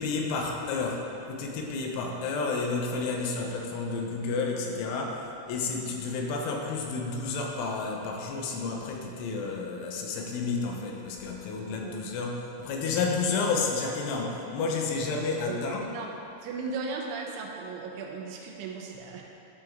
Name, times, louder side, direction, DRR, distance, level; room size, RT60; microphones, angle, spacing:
voice 1, 0.0-5.2 5.5-15.9, left 4 dB, 80° left, 1 dB, 3.4 m, -31 dB
voice 2, 15.5-16.1 16.4-19.3, right 4 dB, 80° right, 0 dB, 3.3 m, -37 dB
12.5 x 7.8 x 3.7 m, 2.8 s
omnidirectional pair, 5.5 m